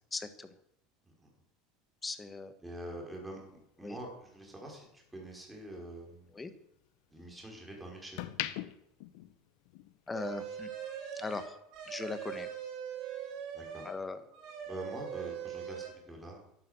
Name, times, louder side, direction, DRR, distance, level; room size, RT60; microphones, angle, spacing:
voice 1, 0.1-0.5 2.0-2.5 3.8-4.0 6.3-6.5 10.1-10.7 11.1-11.6 11.9-12.5 13.8-14.2, left 3 dB, 15° left, 10 dB, 1.5 m, -39 dB
voice 2, 2.6-3.4 3.8-6.3 7.1-8.3 13.5-13.9 14.7-16.4, right 1 dB, 10° right, 0 dB, 5.1 m, -45 dB
sound 1, 3.3-5.7 6.1-7.5 7.9-10.1 10.4-10.6, left 15 dB, 70° left, 1.1 m, -42 dB
sound 2, 10.1-14.0 14.3-15.9, right 8 dB, 60° right, 6.1 m, -41 dB
12.0 x 11.0 x 8.1 m, 0.78 s
supercardioid pair, 135°, 0 cm